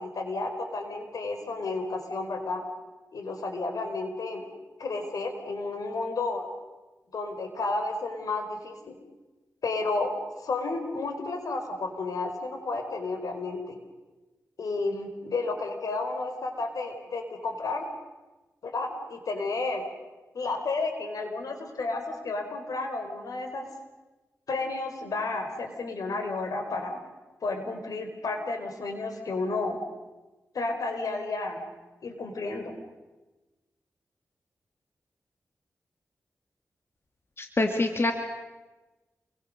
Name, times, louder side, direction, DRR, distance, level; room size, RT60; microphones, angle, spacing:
voice 1, 0.0-2.6 3.1-4.4 4.8-6.4 7.1-9.0 9.6-10.1 10.4-13.8 14.6-17.9 18.6-19.8 20.3-23.7 24.5-27.0 27.4-29.8 30.5-31.7 32.0-32.7, left 3 dB, 80° left, 5 dB, 4.4 m, -32 dB
voice 2, 37.4-38.1, left 2 dB, 40° left, 5 dB, 2.4 m, -25 dB
28.5 x 23.0 x 6.7 m, 1.2 s
wide cardioid pair, 75°, 6 cm